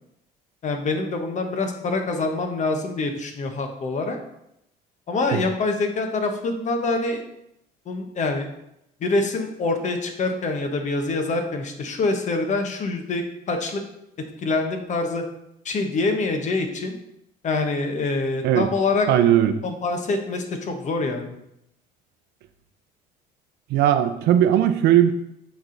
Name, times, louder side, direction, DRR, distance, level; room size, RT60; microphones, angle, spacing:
voice 1, 0.6-4.2 5.1-7.2 7.9-8.5 9.0-13.8 14.4-15.2 15.6-17.0 17.4-19.1 19.6-21.3, left 3 dB, 45° left, 5 dB, 1.1 m, -25 dB
voice 2, 19.1-19.6 23.7-25.1, right 11 dB, 80° right, 10 dB, 0.5 m, -18 dB
8.0 x 3.4 x 3.9 m, 0.80 s
cardioid pair, 110°, 17 cm